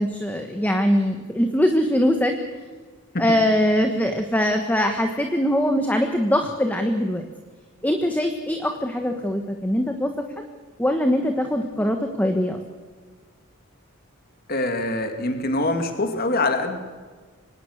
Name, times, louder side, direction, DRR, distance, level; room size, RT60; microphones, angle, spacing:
voice 1, 0.0-2.3 3.2-7.3 7.8-10.4 10.8-12.6, equal, 10° left, 4 dB, 1.4 m, -22 dB
voice 2, 14.5-16.8, left 2 dB, 45° left, 6 dB, 2.5 m, -24 dB
25.0 x 19.0 x 6.7 m, 1.5 s
head